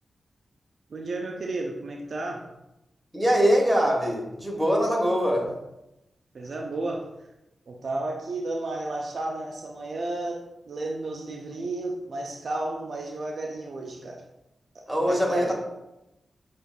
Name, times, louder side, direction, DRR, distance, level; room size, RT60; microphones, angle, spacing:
voice 1, 0.9-2.5 6.3-7.3 7.7-14.2 14.7-15.5, right 2 dB, 65° right, 0 dB, 0.4 m, -33 dB
voice 2, 3.1-5.5 14.9-15.5, equal, 10° right, -2 dB, 1.4 m, -23 dB
6.9 x 2.6 x 2.2 m, 0.91 s
cardioid pair, 50°, 0 cm